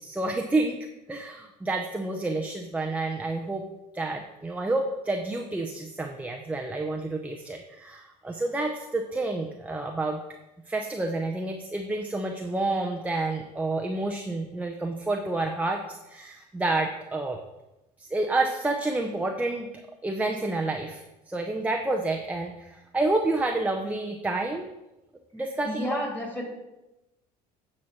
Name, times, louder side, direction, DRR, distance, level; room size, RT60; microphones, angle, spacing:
voice 1, 0.0-3.6 3.9-10.2 10.7-17.4 18.0-19.7 20.0-24.7 25.3-26.0, right 2 dB, 5° right, 3 dB, 0.7 m, -29 dB
voice 2, 25.6-26.4, equal, 10° left, -1 dB, 3.1 m, -31 dB
9.2 x 4.3 x 6.0 m, 0.98 s
hypercardioid pair, 80°, 21 cm